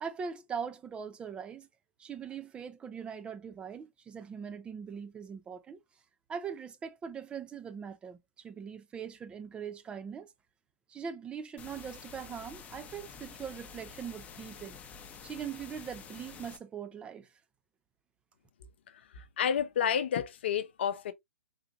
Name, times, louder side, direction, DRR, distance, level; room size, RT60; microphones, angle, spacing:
voice 1, 0.0-1.7 2.0-5.8 6.3-10.3 10.9-14.8 15.2-17.3, right 7 dB, 15° right, 0.5 m, -41 dB
sound 1, 11.6-16.6, left 6 dB, 20° left, 0.7 m, -49 dB
voice 2, 19.2-21.1, left 8 dB, 60° left, 0.7 m, -30 dB
3.8 x 2.8 x 2.7 m
figure-of-eight pair, 120°, 7 cm